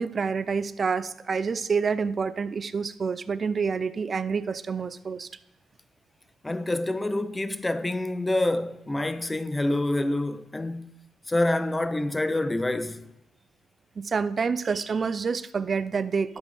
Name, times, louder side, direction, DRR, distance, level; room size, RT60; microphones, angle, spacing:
voice 1, 0.0-5.3 14.0-16.4, right 5 dB, 40° right, 0.5 m, -28 dB
voice 2, 6.4-10.9 11.3-13.1, left 1 dB, 15° left, 0.5 m, -27 dB
12.0 x 8.1 x 3.4 m
cardioid pair, 90°, 0 cm